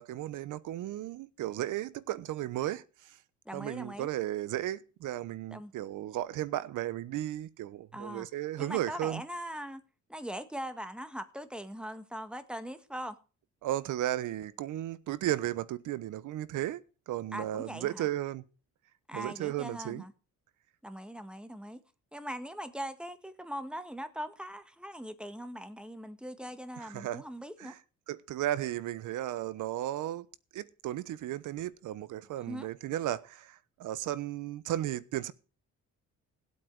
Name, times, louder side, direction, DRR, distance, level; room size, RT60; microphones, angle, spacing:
voice 1, 0.0-3.2 3.5-9.2 13.6-18.4 19.1-20.0 26.8-27.2 27.6-27.8 28.1-30.3 30.5-35.3, right 13 dB, 85° right, 1.0 m, -35 dB
voice 2, 3.4-4.1 5.5-5.7 7.9-8.3 8.6-9.8 10.1-13.2 17.3-18.1 19.1-20.1 20.8-21.8 22.1-27.7 32.4-32.7, equal, 5° right, 1.7 m, -41 dB
17.5 x 8.5 x 4.8 m
cardioid pair, 90°, 30 cm